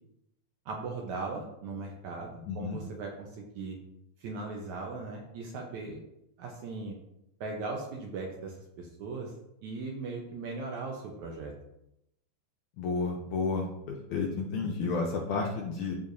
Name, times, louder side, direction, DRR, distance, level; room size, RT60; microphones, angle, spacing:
voice 1, 0.7-3.8 4.2-6.0 6.4-7.0 7.4-9.3 9.6-11.5, right 3 dB, 70° right, 0 dB, 1.9 m, -38 dB
voice 2, 2.5-2.8 12.8-15.9, left 4 dB, 75° left, 0 dB, 1.9 m, -31 dB
13.5 x 4.5 x 2.7 m, 0.81 s
omnidirectional pair, 4.2 m